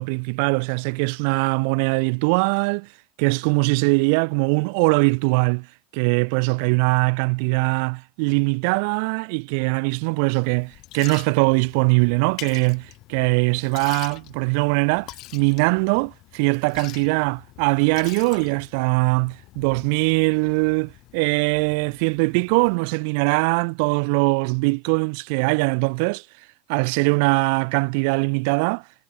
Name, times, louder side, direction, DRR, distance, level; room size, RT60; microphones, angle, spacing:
voice 1, 0.0-2.9 3.2-5.7 5.9-26.2 26.7-28.8, right 35 dB, 65° right, 0.4 m, -21 dB
Liquid, 10.4-22.8, left 18 dB, 55° left, 2.1 m, -44 dB
hypercardioid pair, 100°, 0 cm